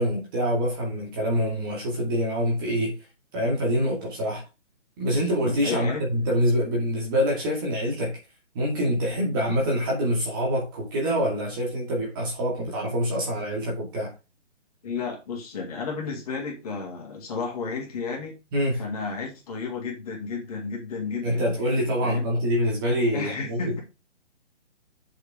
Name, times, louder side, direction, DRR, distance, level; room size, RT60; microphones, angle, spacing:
voice 1, 0.0-3.0 3.3-4.4 5.0-8.2 8.5-14.1 18.5-18.8 21.2-23.8, equal, 20° right, 2.3 m, -25 dB
voice 2, 5.6-6.0 14.8-18.4 18.8-21.5 22.0-22.2 23.1-23.8, left 4 dB, 30° left, 2.8 m, -32 dB
7.9 x 7.0 x 3.7 m
hypercardioid pair, 170°, 36 cm